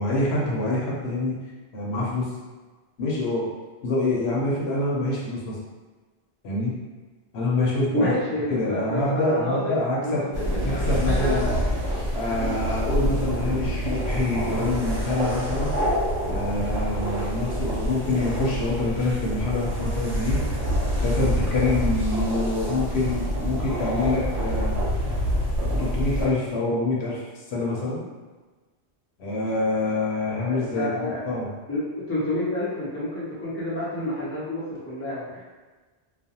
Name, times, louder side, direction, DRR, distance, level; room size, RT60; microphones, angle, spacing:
voice 1, 0.0-1.4 1.7-2.3 3.0-3.5 3.8-5.6 6.4-6.8 7.3-8.1 8.5-10.2 10.6-11.5 12.1-15.7 16.2-20.4 21.0-24.7 25.7-28.0 29.2-31.5, left 2 dB, 70° left, -5 dB, 0.9 m, -26 dB
voice 2, 7.9-9.7 10.0-11.5 30.3-31.3 31.7-35.4, left 1 dB, 15° left, -8 dB, 0.5 m, -29 dB
sound 1, 10.3-26.3, equal, 75° right, 1.1 m, -26 dB
2.4 x 2.2 x 2.8 m, 1.3 s
omnidirectional pair, 1.2 m